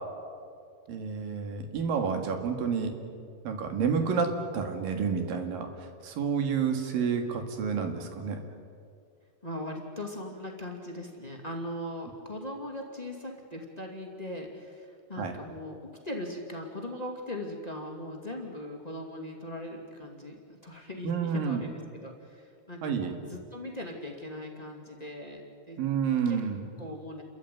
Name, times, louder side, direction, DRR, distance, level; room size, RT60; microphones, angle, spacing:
voice 1, 0.9-3.0 3.4-5.7 6.0-8.4 15.2-15.3 21.0-21.6 22.8-23.2 25.8-26.6, right 6 dB, 65° right, 5 dB, 3.6 m, -29 dB
voice 2, 9.4-25.8 26.2-26.4 26.8-27.2, left 1 dB, 15° left, 2 dB, 1.7 m, -39 dB
29.5 x 14.0 x 9.3 m, 2.3 s
omnidirectional pair, 4.5 m